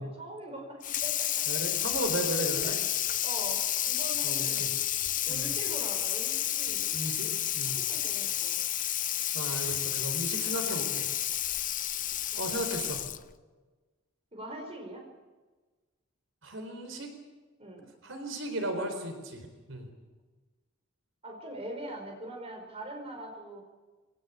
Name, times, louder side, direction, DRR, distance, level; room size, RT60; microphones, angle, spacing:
voice 1, 0.0-1.6 2.6-2.8 3.2-4.7 5.2-7.3 7.7-8.6 12.3-12.6 14.3-15.0 17.6-17.9 21.2-23.6, right 1 dB, 30° right, 2 dB, 5.0 m, -42 dB
Water tap faucet / Sink (filling or washing), 0.8-13.3, left 12 dB, 40° left, 0.7 m, -31 dB
voice 2, 1.5-2.7 4.2-4.7 5.3-5.5 6.9-7.8 9.3-11.1 12.4-13.1 16.4-17.1 18.0-19.9, right 1 dB, 75° right, 5 dB, 4.1 m, -35 dB
23.0 x 18.0 x 8.6 m, 1.3 s
head